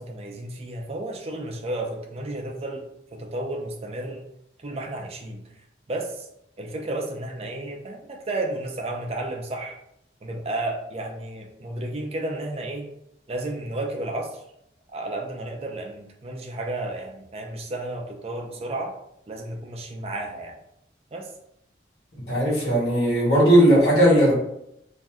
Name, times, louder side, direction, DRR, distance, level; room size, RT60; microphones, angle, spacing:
voice 1, 0.0-2.8 3.1-4.2 4.6-5.4 5.9-6.3 6.6-9.8 10.2-12.9 13.3-14.4 14.9-18.9 19.3-20.6 21.1-21.3, right 2 dB, 35° right, 1 dB, 0.4 m, -32 dB
voice 2, 22.3-24.3, equal, 65° left, -8 dB, 1.3 m, -17 dB
2.6 x 2.2 x 3.4 m, 0.78 s
head